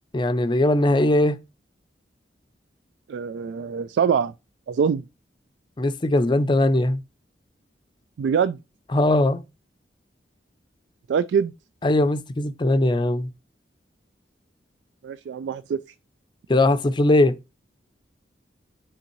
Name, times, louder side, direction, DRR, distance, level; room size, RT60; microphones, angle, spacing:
voice 1, 0.1-1.4 5.8-7.0 8.9-9.4 11.8-13.3 16.5-17.3, left 1 dB, 25° left, 0.5 m, -20 dB
voice 2, 3.1-4.3 4.7-5.0 8.2-8.6 11.1-11.5 15.0-15.8, right 6 dB, 80° right, 0.3 m, -23 dB
9.6 x 3.7 x 3.0 m
head